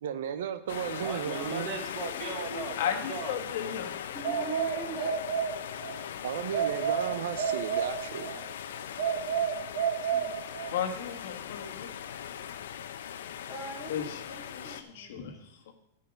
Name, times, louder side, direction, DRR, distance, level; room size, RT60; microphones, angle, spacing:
voice 1, 0.0-1.7 6.2-8.3, right 8 dB, 75° right, 11 dB, 0.9 m, -34 dB
sound 1, 0.7-14.8, left 9 dB, 80° left, 0.8 m, -40 dB
voice 2, 1.0-3.4, right 4 dB, 35° right, 5 dB, 1.5 m, -37 dB
voice 3, 2.8-3.9 10.7-11.9 13.9-14.2 14.5-15.4 15.7-15.8, left 8 dB, 60° left, 4 dB, 1.6 m, -34 dB
voice 4, 4.1-5.3 8.0-11.5 13.5-15.4, right 2 dB, 5° right, -4 dB, 2.8 m, -45 dB
sound 2, 4.2-6.0 6.5-8.4 9.0-10.8, right 8 dB, 50° right, 1.4 m, -31 dB
13.0 x 5.6 x 6.5 m, 0.76 s
supercardioid pair, 165°, 0 cm